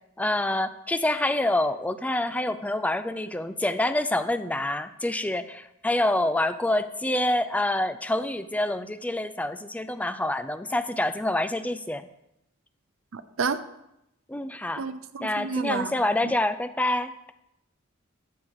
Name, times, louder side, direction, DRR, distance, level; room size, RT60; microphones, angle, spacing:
voice 1, 0.2-12.0 14.3-14.8 15.2-17.1, left 1 dB, 5° left, 12 dB, 0.4 m, -27 dB
voice 2, 13.1-13.6 14.8-16.0, right 5 dB, 70° right, 11 dB, 0.6 m, -30 dB
13.0 x 7.9 x 3.7 m, 0.84 s
head